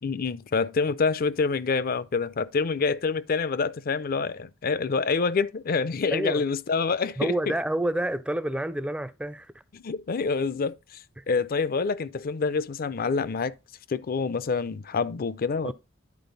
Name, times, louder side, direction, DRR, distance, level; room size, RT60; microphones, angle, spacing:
voice 1, 0.0-7.5 9.7-13.6 13.9-15.7, left 4 dB, 50° left, 0.5 m, -27 dB
voice 2, 6.1-6.4 7.2-9.5 11.2-11.3 15.6-15.7, right 1 dB, 5° right, 0.4 m, -28 dB
10.5 x 4.4 x 3.9 m
head